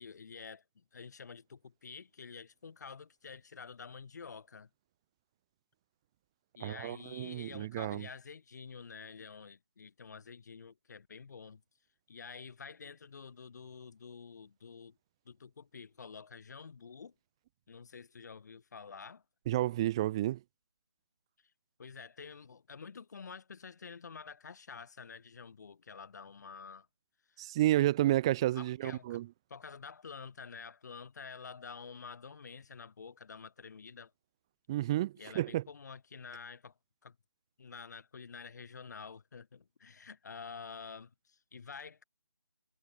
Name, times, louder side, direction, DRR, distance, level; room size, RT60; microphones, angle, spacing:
voice 1, 0.0-4.7 6.5-11.6 12.1-15.0 15.3-17.1 17.7-19.2 21.8-26.9 27.3-27.5 28.5-29.2 29.5-34.1 35.2-36.7 37.0-37.2 37.6-42.0, left 5 dB, 40° left, 5.3 m, -49 dB
voice 2, 6.6-8.1 19.5-20.4 27.4-29.3 34.7-35.6, right 14 dB, 10° right, 1.0 m, -31 dB
figure-of-eight pair, 170°, 15 cm